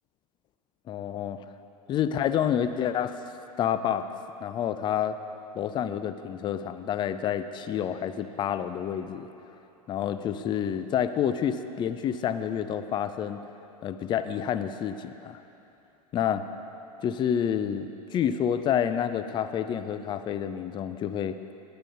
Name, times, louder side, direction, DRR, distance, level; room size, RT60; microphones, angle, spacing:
voice 1, 0.9-1.4 1.9-3.2 3.6-4.0 4.4-5.2 5.5-9.3 9.9-13.4 13.8-15.4 16.1-16.4 17.0-21.4, left 9 dB, 25° left, 11 dB, 0.5 m, -28 dB
18.5 x 8.8 x 3.9 m, 2.9 s
figure-of-eight pair, 95°, 20 cm